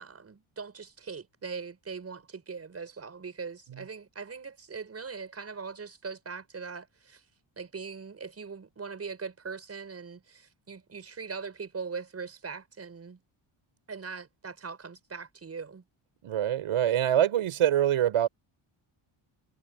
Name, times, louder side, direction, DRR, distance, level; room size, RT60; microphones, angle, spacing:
voice 1, 0.0-7.2 7.6-13.2 13.9-15.8, right 5 dB, 30° right, 6.4 m, -41 dB
voice 2, 16.2-18.3, right 11 dB, 85° right, 7.6 m, -25 dB
wide cardioid pair, 170°, 50 cm